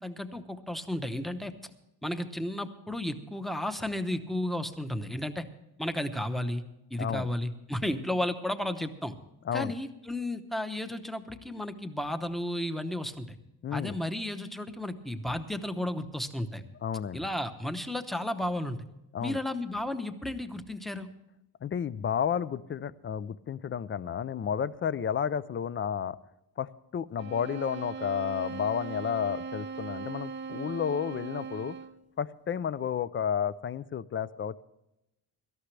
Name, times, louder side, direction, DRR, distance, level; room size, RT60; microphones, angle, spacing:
voice 1, 0.0-1.5 2.0-5.4 5.8-6.6 6.9-9.2 9.5-13.4 13.7-16.6 17.1-18.8 19.2-21.1, left 1 dB, ahead, 8 dB, 0.8 m, -33 dB
voice 2, 7.0-7.3 9.5-9.7 13.6-14.0 16.8-17.3 19.1-19.4 21.6-26.2 26.6-31.8 32.2-34.6, left 8 dB, 35° left, 16 dB, 0.4 m, -32 dB
sound 1, 27.2-32.1, right 5 dB, 30° right, 0.8 m, -39 dB
17.5 x 13.5 x 3.3 m, 0.88 s
cardioid pair, 165°, 38 cm